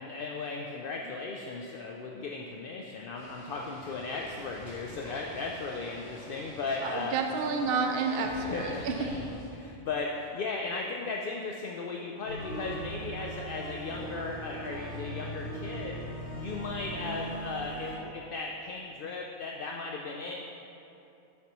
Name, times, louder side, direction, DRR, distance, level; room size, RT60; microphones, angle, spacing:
voice 1, 0.0-7.2 8.2-8.9 9.5-16.0 16.3-20.4, left 4 dB, 65° left, 0 dB, 0.5 m, -36 dB
sound 1, 3.1-9.5, equal, 45° left, 2.3 m, -45 dB
voice 2, 6.8-9.0, right 4 dB, 60° right, 3 dB, 0.7 m, -30 dB
sound 2, 12.3-18.0, right 1 dB, 90° left, 1.8 m, -39 dB
9.1 x 7.5 x 3.0 m, 2.8 s
omnidirectional pair, 1.4 m